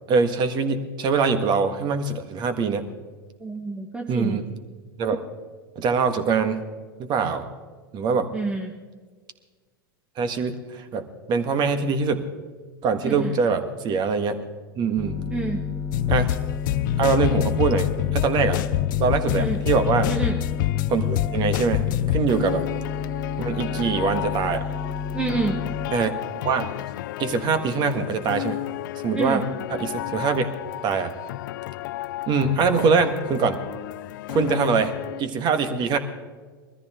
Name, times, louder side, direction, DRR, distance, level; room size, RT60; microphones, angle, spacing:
voice 1, 0.1-2.9 4.1-4.4 5.0-5.2 5.7-6.6 7.0-7.4 7.9-8.3 10.2-12.2 12.8-14.4 14.8-15.2 16.1-16.3 17.0-18.6 19.0-20.1 20.9-22.7 23.4-24.6 25.9-26.1 26.4-26.7 27.2-28.6 29.0-29.4 29.7-30.5 30.8-31.1 32.3-33.6 34.3-34.9 35.2-36.0, right 5 dB, 35° right, 9 dB, 1.6 m, -23 dB
voice 2, 3.4-4.4 8.3-8.7 13.0-13.3 15.2-15.6 19.4-19.6 20.1-20.4 25.1-25.6 29.1-29.4, right 3 dB, 10° right, 1 dB, 1.3 m, -28 dB
sound 1, 15.0-25.9, left 6 dB, 20° left, 2.7 m, -31 dB
sound 2, 15.9-35.2, left 16 dB, 60° left, 0.4 m, -29 dB
21.5 x 14.0 x 3.7 m, 1.5 s
hypercardioid pair, 100°, 12 cm